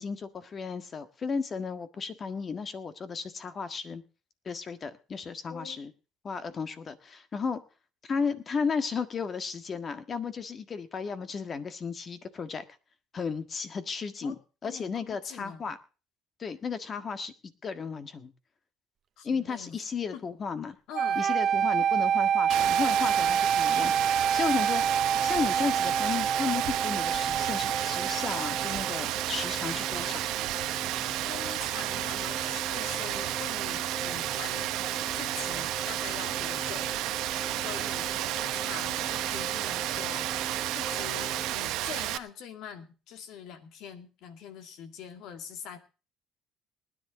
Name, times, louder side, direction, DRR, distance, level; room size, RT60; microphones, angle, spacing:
voice 1, 0.0-4.0 4.4-5.9 6.2-7.6 8.0-12.6 13.1-14.4 14.6-15.8 16.4-17.3 17.6-18.3 19.2-20.8 21.1-24.8 25.2-30.3, left 5 dB, 35° left, 10 dB, 1.6 m, -34 dB
voice 2, 14.6-15.6 19.2-19.8 20.1-20.3 20.9-21.2 31.3-36.9 37.6-45.8, left 8 dB, 75° left, 8 dB, 2.2 m, -44 dB
sound 1, 20.9-29.0, right 8 dB, 50° right, 0.5 m, -27 dB
Rain, 22.5-42.2, right 15 dB, 80° right, 0.9 m, -32 dB
sound 2, 24.8-41.6, left 1 dB, 5° left, 1.2 m, -42 dB
20.0 x 10.5 x 3.8 m, 0.34 s
cardioid pair, 110°, 0 cm